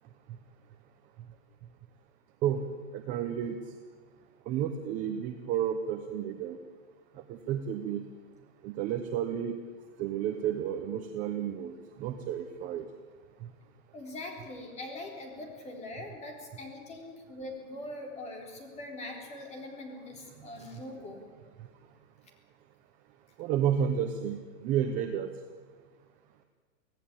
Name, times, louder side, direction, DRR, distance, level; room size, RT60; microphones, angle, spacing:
voice 1, 2.9-3.6 4.5-6.6 7.3-8.0 8.6-9.5 10.0-11.7 12.0-12.9 23.4-25.3, right 9 dB, 20° right, 6 dB, 0.8 m, -31 dB
voice 2, 13.9-21.3, left 2 dB, 15° left, 2 dB, 3.9 m, -42 dB
25.5 x 16.5 x 8.8 m, 1.6 s
supercardioid pair, 165°, 42 cm